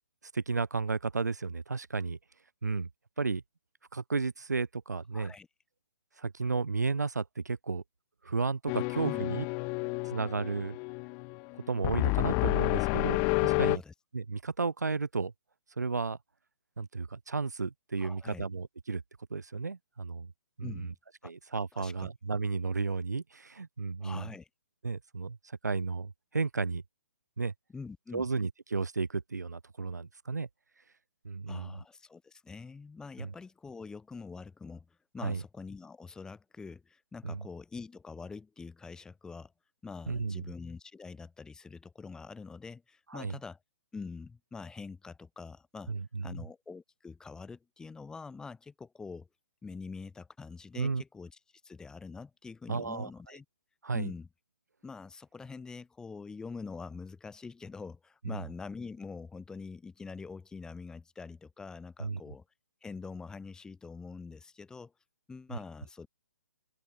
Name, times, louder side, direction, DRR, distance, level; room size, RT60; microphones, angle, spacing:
voice 1, 0.3-2.2 2.6-2.9 3.2-3.4 3.9-5.3 6.2-7.8 8.2-9.4 10.0-10.8 11.5-13.8 14.1-15.3 15.8-16.2 16.8-19.0 19.3-20.3 20.6-20.9 21.2-24.3 24.8-26.8 27.4-27.5 28.1-30.5 31.2-31.8 33.2-33.3 35.2-35.4 37.2-37.5 40.1-40.5 43.1-43.4 45.9-46.4 50.7-51.0 52.7-53.1 53.8-54.1 58.2-58.4 62.0-62.2, right 4 dB, 85° right, 3.3 m, -33 dB
voice 2, 5.1-5.5 9.0-9.3 13.7-13.9 18.0-18.4 20.6-20.9 21.2-21.3 21.7-22.1 24.0-24.5 27.7-28.3 31.5-34.9 35.1-39.5 39.8-43.6 43.9-45.9 46.2-49.3 49.6-51.3 51.6-53.4 53.9-54.3 54.8-62.4 62.8-64.9 65.3-66.1, left 4 dB, 5° left, 4.7 m, -45 dB
sound 1, 8.7-13.8, left 34 dB, 25° left, 0.8 m, -30 dB
open air
hypercardioid pair, 140°, 9 cm